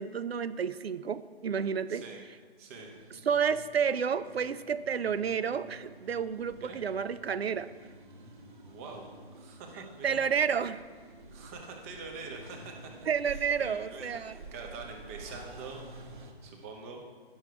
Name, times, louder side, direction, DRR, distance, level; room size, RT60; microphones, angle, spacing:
voice 1, 0.0-2.0 3.3-7.7 10.0-10.8 13.1-14.3, right 7 dB, 75° right, 14 dB, 0.5 m, -30 dB
voice 2, 2.6-2.9 6.6-6.8 8.6-9.1 9.4-10.2 11.3-15.8 16.4-17.0, right 4 dB, 15° right, 2 dB, 0.7 m, -45 dB
sound 1, 2.7-16.3, right 2 dB, 50° right, 1.4 m, -50 dB
10.0 x 6.2 x 4.7 m, 1.5 s
figure-of-eight pair, 145°, 31 cm